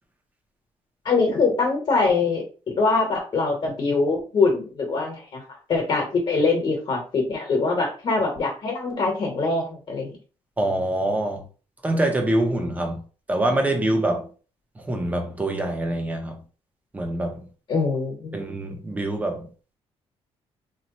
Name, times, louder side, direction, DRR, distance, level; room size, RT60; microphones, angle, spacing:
voice 1, 1.0-2.4 2.8-5.4 5.7-10.1 17.7-18.4, left 3 dB, 50° left, 1.3 m, -23 dB
voice 2, 10.6-11.5 11.8-13.0 13.3-14.3 14.8-16.4 16.9-17.5 18.3-19.5, right 1 dB, 15° right, 0.7 m, -25 dB
3.0 x 2.2 x 4.0 m
cardioid pair, 160°, 11 cm